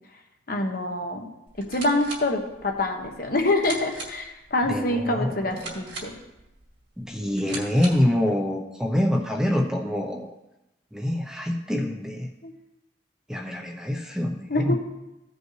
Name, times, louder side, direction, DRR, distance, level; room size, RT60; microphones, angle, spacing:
voice 1, 0.5-1.3 1.7-6.1 12.4-12.5 14.5-14.7, left 2 dB, 55° left, 3 dB, 1.1 m, -26 dB
sound 1, 1.5-8.2, right 3 dB, 65° right, 2.3 m, -41 dB
voice 2, 4.6-5.8 7.0-10.3 10.9-12.3 13.3-14.7, left 1 dB, 5° right, 0 dB, 0.7 m, -26 dB
15.5 x 5.3 x 3.2 m, 0.93 s
head